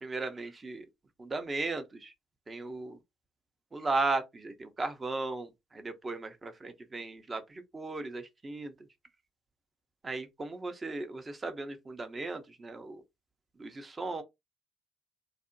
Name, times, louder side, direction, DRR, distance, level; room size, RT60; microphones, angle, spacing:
voice 1, 0.0-0.8 1.2-2.1 2.5-3.0 3.7-8.7 10.0-13.0 13.6-14.2, right 3 dB, 30° right, 0.7 m, -36 dB
2.5 x 2.1 x 2.6 m
hypercardioid pair, 55°, 0 cm